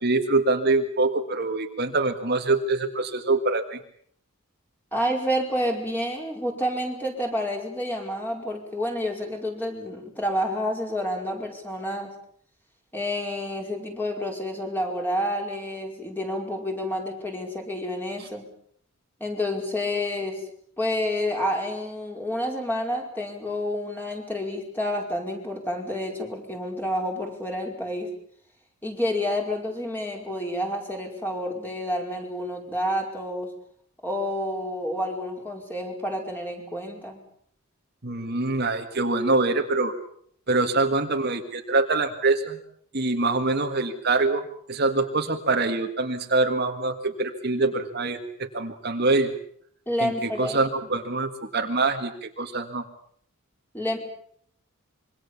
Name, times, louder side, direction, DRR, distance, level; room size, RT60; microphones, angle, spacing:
voice 1, 0.0-3.8 38.0-39.9 40.5-42.6 42.9-44.4 44.7-49.3 50.0-50.1 50.4-52.8, right 3 dB, 45° right, 5 dB, 1.9 m, -24 dB
voice 2, 4.9-12.1 12.9-18.4 19.2-20.5 20.8-28.1 28.8-33.5 34.0-37.2 49.9-50.7 53.7-54.0, left 1 dB, 10° left, 1 dB, 5.1 m, -29 dB
26.0 x 23.5 x 7.3 m, 0.64 s
head